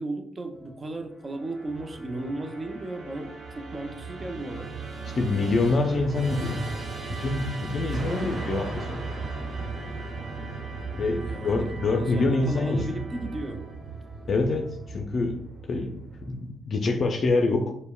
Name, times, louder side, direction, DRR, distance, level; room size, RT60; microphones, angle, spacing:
voice 1, 0.0-4.7 8.0-8.5 11.2-13.6, right 2 dB, 35° right, 5 dB, 0.6 m, -35 dB
sound 1, 0.5-15.0, left 1 dB, 5° left, 1.1 m, -51 dB
Musical instrument, 1.2-16.5, right 3 dB, 75° right, 1.0 m, -37 dB
voice 2, 5.1-6.7 7.1-9.1 10.9-12.9 14.3-17.7, left 3 dB, 55° left, 4 dB, 0.4 m, -26 dB
Explosion, 7.9-10.9, right 2 dB, 50° right, 1.2 m, -42 dB
5.3 x 2.1 x 2.3 m, 0.70 s
supercardioid pair, 65°, 0 cm